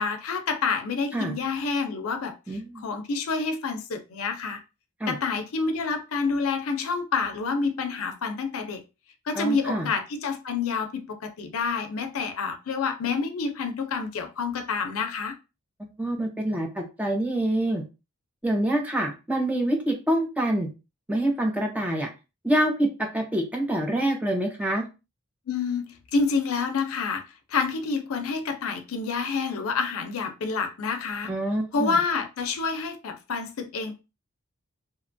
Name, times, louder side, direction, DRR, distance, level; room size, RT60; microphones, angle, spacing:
voice 1, 0.0-4.6 5.1-8.8 9.3-15.3 25.5-27.2 27.5-31.3 31.7-34.0, left 4 dB, 80° left, 0.5 m, -28 dB
voice 2, 2.5-2.8 5.0-5.1 9.4-9.9 15.8-17.8 18.4-20.7 21.1-22.1 22.4-24.9 31.3-32.0, right 1 dB, 5° right, 0.4 m, -26 dB
2.8 x 2.2 x 2.5 m
head